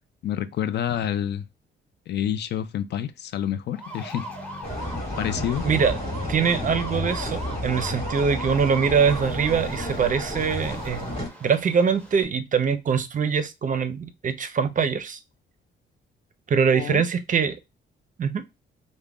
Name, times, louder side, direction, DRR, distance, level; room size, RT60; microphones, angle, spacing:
voice 1, 0.2-1.4 2.1-4.3 5.2-5.7 16.7-17.0, left 10 dB, 60° left, 0.4 m, -28 dB
sound 1, 3.7-12.2, equal, 5° left, 1.1 m, -39 dB
sound 2, 4.6-11.3, left 1 dB, 30° left, 2.0 m, -31 dB
voice 2, 5.6-6.0 6.3-11.0 11.4-15.2 16.5-17.6 18.2-18.4, right 6 dB, 40° right, 0.6 m, -23 dB
5.0 x 2.1 x 2.3 m
cardioid pair, 90°, 20 cm